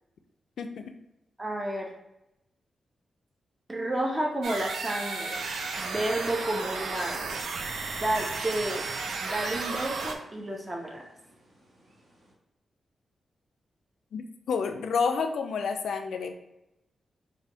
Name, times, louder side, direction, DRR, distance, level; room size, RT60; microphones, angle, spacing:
voice 1, 0.6-0.9 14.1-16.3, left 5 dB, 85° left, 6 dB, 0.4 m, -29 dB
voice 2, 1.4-1.9 3.7-5.4 5.8-7.2 8.0-8.8 9.2-11.0, right 1 dB, 15° right, 0 dB, 0.5 m, -31 dB
sound 1, 4.4-10.2, right 4 dB, 80° right, 0.4 m, -33 dB
sound 2, 7.2-12.3, right 1 dB, 55° right, 1.0 m, -51 dB
3.4 x 2.2 x 3.6 m, 0.90 s
wide cardioid pair, 135°, 0 cm